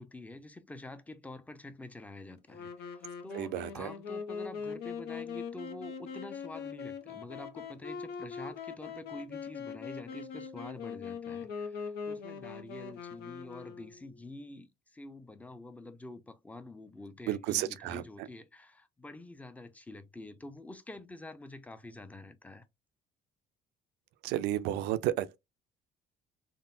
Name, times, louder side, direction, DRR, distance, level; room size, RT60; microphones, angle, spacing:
voice 1, 0.0-22.7, left 2 dB, 10° left, 0.5 m, -47 dB
Wind instrument woodwind instrument, 2.5-14.2, left 6 dB, 75° left, 0.7 m, -41 dB
voice 2, 3.3-3.9 17.3-18.3 24.2-25.4, right 13 dB, 85° right, 0.4 m, -32 dB
3.6 x 2.0 x 2.6 m
cardioid pair, 110°, 17 cm